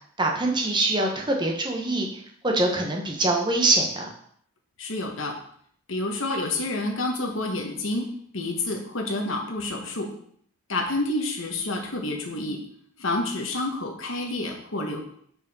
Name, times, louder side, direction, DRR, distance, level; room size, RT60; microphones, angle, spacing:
voice 1, 0.2-2.1 2.4-4.1, right 2 dB, 20° right, 0 dB, 1.1 m, -24 dB
voice 2, 4.8-5.4 5.9-8.1 8.3-10.1 10.7-12.6 13.0-15.0, left 2 dB, 60° left, 2 dB, 1.2 m, -28 dB
5.5 x 4.9 x 5.4 m, 0.64 s
head